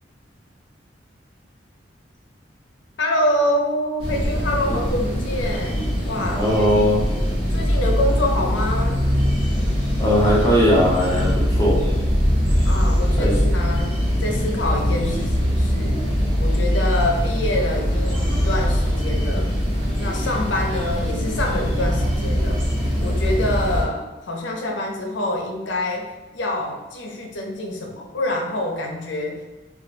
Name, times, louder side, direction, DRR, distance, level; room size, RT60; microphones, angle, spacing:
voice 1, 3.0-7.1 7.5-9.0 12.4-16.0 16.4-19.6 20.0-22.7 23.0-29.4, left 1 dB, 75° left, 1 dB, 0.6 m, -26 dB
sound 1, 4.0-23.8, equal, 25° right, 0.9 m, -22 dB
voice 2, 6.1-7.0 10.0-11.8 13.2-13.4, equal, 15° left, -6 dB, 0.7 m, -19 dB
2.3 x 2.2 x 3.9 m, 1.1 s
head